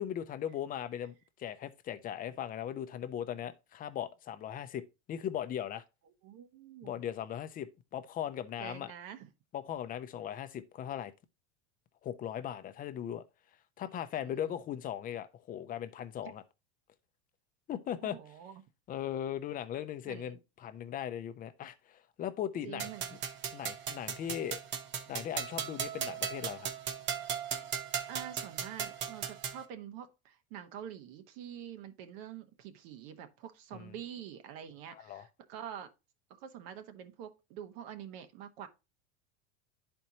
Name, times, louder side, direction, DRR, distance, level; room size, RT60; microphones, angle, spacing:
voice 1, 0.0-5.8 6.8-8.9 9.5-11.1 12.0-13.2 13.8-16.4 17.7-18.2 18.9-22.9 23.5-24.6 25.1-26.7 33.7-33.9 34.9-35.3, left 10 dB, 25° left, 0.6 m, -38 dB
voice 2, 6.2-7.0 8.6-9.3 14.2-14.5 18.0-18.6 20.1-20.4 22.6-23.2 28.1-35.9 36.4-38.7, right 9 dB, 60° right, 1.0 m, -46 dB
sound 1, 22.8-29.6, right 8 dB, 35° right, 0.8 m, -37 dB
10.5 x 4.4 x 2.8 m
supercardioid pair, 130°, 33 cm